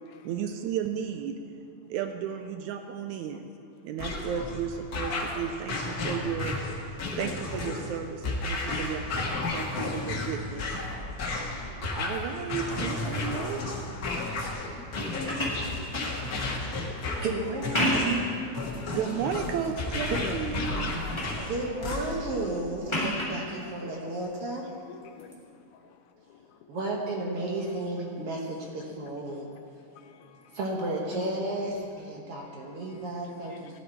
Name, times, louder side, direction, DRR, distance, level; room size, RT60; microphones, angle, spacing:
voice 1, 0.2-1.4 1.9-3.5 3.8-6.9 7.2-10.8 12.0-13.7 18.9-20.9, right 8 dB, 80° right, 6 dB, 1.8 m, -34 dB
sound 1, 4.0-22.4, left 2 dB, 60° left, 0.9 m, -33 dB
sound 2, 14.8-16.6 17.5-18.3 18.8-19.4 19.9-20.4 20.7-21.4 22.9-23.4 25.2-25.3, equal, 15° left, 1.3 m, -31 dB
voice 2, 16.7-18.3 20.1-20.4 21.4-24.7 26.7-29.5 30.5-33.8, right 2 dB, 60° right, -1 dB, 1.7 m, -33 dB
voice 3, 24.9-25.3 26.3-26.4 30.0-30.6 33.5-33.8, left 8 dB, 75° left, 5 dB, 2.0 m, -48 dB
15.0 x 10.5 x 4.6 m, 2.5 s
omnidirectional pair, 3.7 m